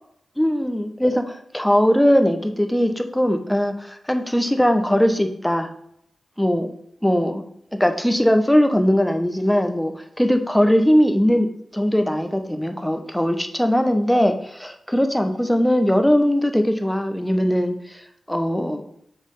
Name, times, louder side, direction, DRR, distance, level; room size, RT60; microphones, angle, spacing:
voice 1, 0.4-5.7 6.4-6.7 7.0-7.4 7.7-11.5 11.7-18.0 18.3-18.8, equal, 5° left, 6 dB, 1.0 m, -20 dB
7.6 x 3.4 x 5.4 m, 0.71 s
cardioid pair, 40°, 0 cm